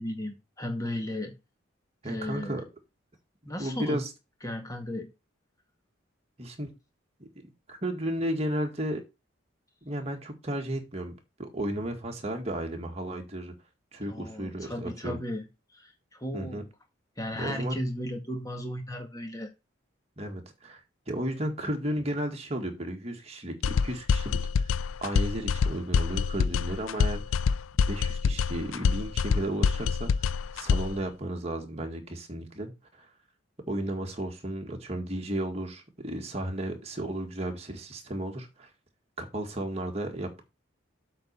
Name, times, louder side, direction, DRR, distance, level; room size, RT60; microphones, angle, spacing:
voice 1, 0.0-1.3 2.0-2.6 3.5-4.0 4.4-5.1 14.1-15.4 15.7-16.6 17.2-19.5, left 1 dB, 15° left, 1.8 m, -35 dB
voice 2, 2.0-2.6 3.6-4.1 6.4-6.7 7.2-9.0 9.8-13.5 13.9-15.2 16.3-16.7 17.4-17.8 20.2-20.8 21.1-24.8 25.0-27.4 27.9-33.1 33.7-38.7 39.2-40.4, right 1 dB, 30° right, 1.8 m, -34 dB
sound 1, 23.6-31.0, left 5 dB, 75° left, 0.4 m, -26 dB
8.0 x 4.3 x 6.7 m
head